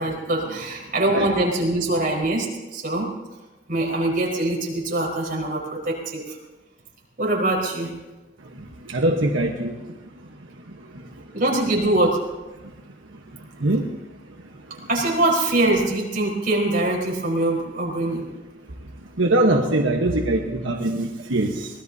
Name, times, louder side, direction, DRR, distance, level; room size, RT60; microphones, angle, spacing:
voice 1, 0.0-3.1 3.7-6.2 7.2-7.9 11.3-12.2 14.9-18.2, right 2 dB, 45° right, -2 dB, 4.5 m, -23 dB
voice 2, 8.9-9.7 13.6-13.8 19.2-21.7, right 1 dB, 85° right, 1 dB, 1.2 m, -22 dB
24.0 x 18.0 x 2.8 m, 1.1 s
head